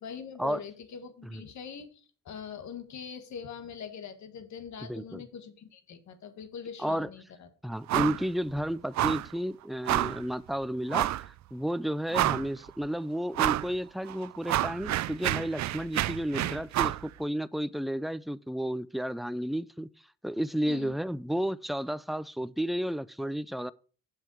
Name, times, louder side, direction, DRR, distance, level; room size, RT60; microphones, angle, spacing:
voice 1, 0.0-7.5 12.1-12.2 20.7-20.9, left 7 dB, 65° left, 1.6 m, -43 dB
voice 2, 4.9-5.2 6.8-7.1 7.6-11.2 11.5-19.9 20.2-23.7, equal, ahead, 0.3 m, -32 dB
sound 1, 7.9-8.2 8.5-8.6 8.9-9.3 9.9-10.2 10.9-11.3 11.7-11.8 12.1-12.6 13.3-13.7 14.1-17.0, right 14 dB, 65° right, 0.5 m, -28 dB
7.6 x 5.7 x 6.1 m
cardioid pair, 90°, 30 cm